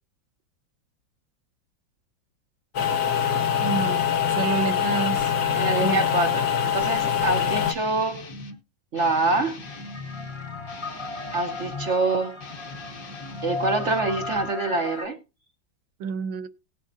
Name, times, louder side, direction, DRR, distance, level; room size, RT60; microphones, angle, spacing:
sound 1, 2.7-7.7, left 8 dB, 70° left, 1.8 m, -24 dB
voice 1, 3.6-5.3 5.7-6.0 16.0-16.5, right 6 dB, 75° right, 1.5 m, -29 dB
voice 2, 5.5-8.3 8.9-9.6 11.3-12.4 13.4-15.2, right 3 dB, 50° right, 0.8 m, -25 dB
Guitar, 7.3-8.6 8.9-11.9 12.3-14.5, left 4 dB, 45° left, 1.5 m, -39 dB
sound 2, 9.6-15.0, left 2 dB, 25° left, 0.6 m, -37 dB
19.0 x 7.5 x 2.6 m
omnidirectional pair, 2.2 m